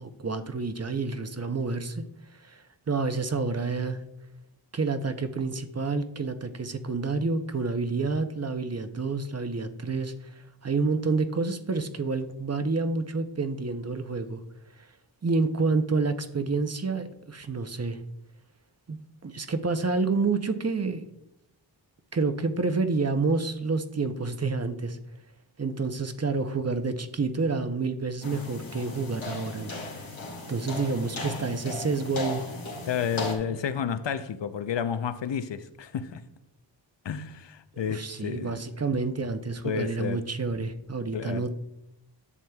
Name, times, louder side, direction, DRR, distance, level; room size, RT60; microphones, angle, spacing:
voice 1, 0.0-2.0 2.4-4.0 4.7-14.4 15.2-18.0 18.9-21.0 22.1-25.0 25.6-30.1 30.5-32.4 33.5-33.6 37.8-41.5, right 4 dB, 35° right, 0.7 m, -29 dB
sound 1, 28.2-33.3, left 2 dB, 90° left, 1.9 m, -37 dB
voice 2, 32.9-36.2 37.0-38.6 39.6-40.3 41.1-41.5, left 7 dB, 65° left, 0.7 m, -31 dB
11.0 x 7.1 x 2.3 m
cardioid pair, 55°, 47 cm